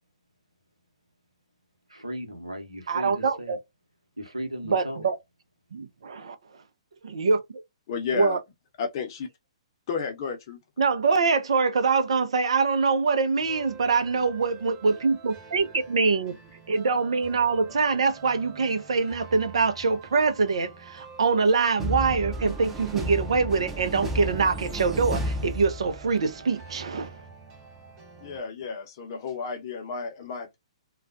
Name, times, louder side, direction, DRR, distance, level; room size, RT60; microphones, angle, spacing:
voice 1, 1.9-3.6 4.2-5.0, equal, 90° right, 0.8 m, -36 dB
voice 2, 2.9-3.6 4.7-5.1 5.7-6.4 7.0-7.6 8.1-8.4 10.8-16.4 16.7-27.2, right 4 dB, 65° right, 0.5 m, -24 dB
voice 3, 7.9-8.4 8.8-9.3 9.9-10.6 28.2-30.6, left 5 dB, 45° left, 0.7 m, -32 dB
sound 1, 13.4-28.4, right 4 dB, 30° right, 1.2 m, -47 dB
sound 2, 21.8-26.3, right 1 dB, 10° right, 0.6 m, -32 dB
2.3 x 2.1 x 2.5 m
figure-of-eight pair, 120°, 3 cm